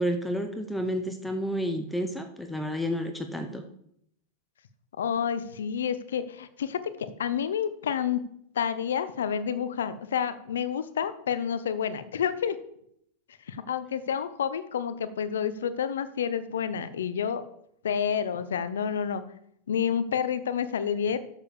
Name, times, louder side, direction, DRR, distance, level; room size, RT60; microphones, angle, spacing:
voice 1, 0.0-3.6, equal, 5° left, 6 dB, 1.0 m, -30 dB
voice 2, 5.0-8.2 8.5-12.6 13.5-17.4 17.8-19.2 19.7-21.2, left 8 dB, 80° left, 13 dB, 0.8 m, -29 dB
7.1 x 6.7 x 7.0 m, 0.72 s
hypercardioid pair, 100°, 0 cm